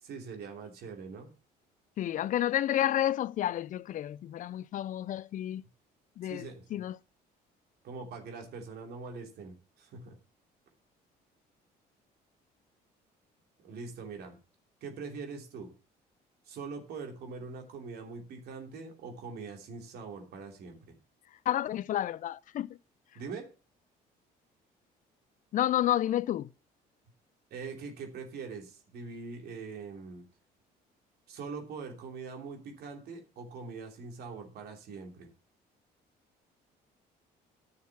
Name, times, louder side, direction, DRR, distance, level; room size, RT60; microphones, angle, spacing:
voice 1, 0.0-1.3 6.3-6.6 7.8-10.2 13.6-14.4 14.8-15.7 16.5-21.0 23.1-23.5 27.5-30.3 31.3-35.3, right 4 dB, 70° right, 3.0 m, -43 dB
voice 2, 2.0-5.6 6.2-6.5 6.7-7.0 21.5-22.7 25.5-26.5, left 12 dB, 50° left, 0.4 m, -30 dB
10.5 x 6.5 x 5.9 m
cardioid pair, 110°, 17 cm